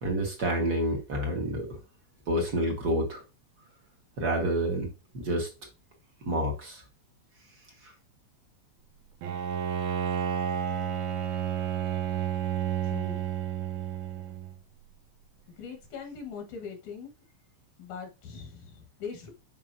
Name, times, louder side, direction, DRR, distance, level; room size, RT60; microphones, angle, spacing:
voice 1, 0.0-1.7 2.3-3.2 4.2-4.9 5.1-5.5 6.3-6.8, right 1 dB, 45° right, 1.5 m, -28 dB
Bowed string instrument, 9.2-14.6, right 9 dB, 85° right, 2.4 m, -31 dB
voice 2, 12.8-13.2 15.6-17.1 17.8-19.3, left 6 dB, 80° left, 2.8 m, -41 dB
7.5 x 5.2 x 2.6 m
omnidirectional pair, 3.3 m